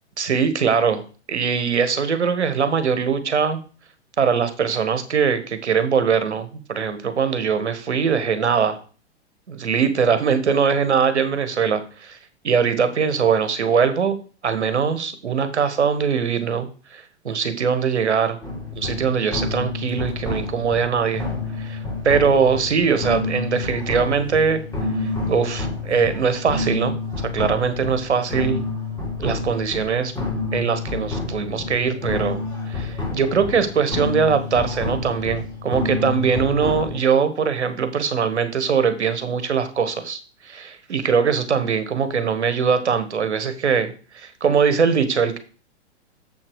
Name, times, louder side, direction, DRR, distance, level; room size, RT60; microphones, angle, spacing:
voice 1, 0.2-1.0 1.3-3.6 4.2-8.8 9.5-12.2 12.4-14.2 14.4-18.4 18.7-21.2 21.6-21.8 22.0-24.6 25.0-28.6 29.2-30.1 30.5-32.4 32.7-40.2 40.4-45.4, right 6 dB, 75° right, 11 dB, 1.4 m, -21 dB
sound 1, 18.4-37.0, left 3 dB, 10° left, 3.4 m, -29 dB
7.4 x 5.9 x 4.8 m, 0.38 s
figure-of-eight pair, 110°, 34 cm